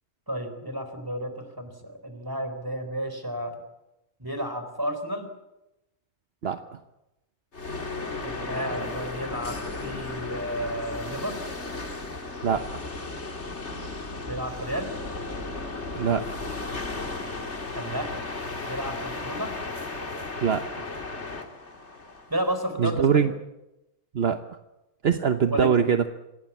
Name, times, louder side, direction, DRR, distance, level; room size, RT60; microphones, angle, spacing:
voice 1, 0.3-3.5 4.2-5.3 8.2-11.4 14.3-14.9 17.7-18.1 18.6-19.5 22.3-23.3 25.5-25.7, equal, 20° right, 8 dB, 4.0 m, -32 dB
sound 1, 7.5-22.7, left 3 dB, 90° left, 2.8 m, -35 dB
voice 2, 12.4-12.8 16.0-16.3 20.4-20.9 22.8-23.3 24.1-24.4 25.0-26.1, right 7 dB, 65° right, 8 dB, 1.2 m, -23 dB
26.0 x 18.0 x 8.5 m, 0.96 s
omnidirectional pair, 1.1 m